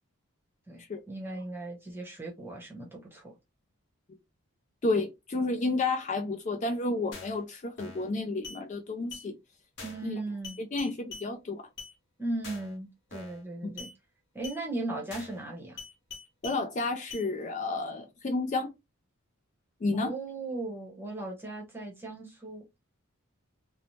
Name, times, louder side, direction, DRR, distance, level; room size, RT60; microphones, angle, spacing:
voice 1, 0.7-3.3 9.8-10.6 12.2-13.9 14.3-15.8 19.9-22.6, right 2 dB, 10° right, 0.8 m, -37 dB
voice 2, 4.8-9.3 10.0-10.2 10.6-11.7 13.6-13.7 16.4-18.7 19.8-20.1, left 3 dB, 35° left, 0.3 m, -31 dB
sound 1, 7.1-7.4 7.8-8.1 8.4-8.6 9.1-9.3 9.8-10.1 10.4-11.3 11.8-11.9 12.4-12.7 13.1-13.4 13.8-13.9 14.4-14.6 15.1-15.4 15.8-16.6 17.1-17.3, left 4 dB, 50° left, 0.9 m, -44 dB
2.7 x 2.0 x 3.1 m
head